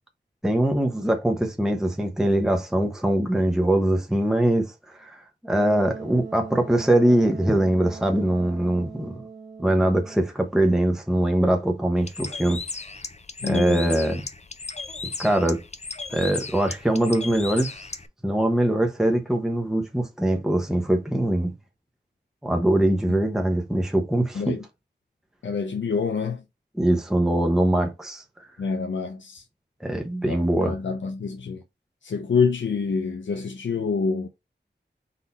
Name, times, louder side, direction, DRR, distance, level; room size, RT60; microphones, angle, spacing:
voice 1, 0.4-9.2 9.6-12.6 13.4-14.2 15.2-15.6 16.1-17.9 18.2-21.5 22.4-24.6 26.7-28.2 29.8-30.7, right 1 dB, 5° right, 0.8 m, -22 dB
Wind instrument woodwind instrument, 5.5-10.4, right 5 dB, 90° right, 1.0 m, -41 dB
Bird, 12.0-18.1, left 4 dB, 35° left, 0.6 m, -36 dB
voice 2, 13.4-13.9 24.3-24.6 25.4-26.4 28.6-29.4 30.3-31.6 32.0-34.3, left 5 dB, 80° left, 0.5 m, -27 dB
4.1 x 2.7 x 4.0 m
cardioid pair, 40°, 19 cm